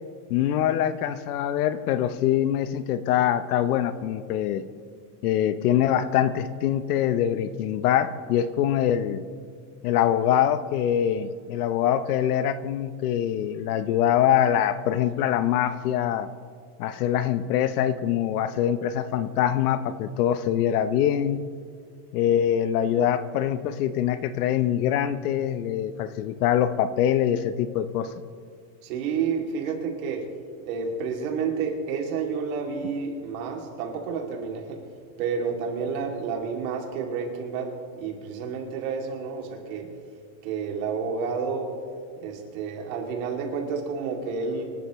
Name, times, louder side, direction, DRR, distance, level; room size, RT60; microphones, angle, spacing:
voice 1, 0.3-4.6 5.2-9.2 9.8-16.3 16.8-21.4 22.1-28.1, left 10 dB, 75° left, 13 dB, 0.9 m, -24 dB
voice 2, 28.8-30.2 30.6-34.8 35.2-37.7 38.0-39.9 40.4-41.7 42.2-44.6, right 5 dB, 65° right, 1 dB, 2.9 m, -30 dB
25.5 x 12.0 x 3.2 m, 2.1 s
supercardioid pair, 155°, 45 cm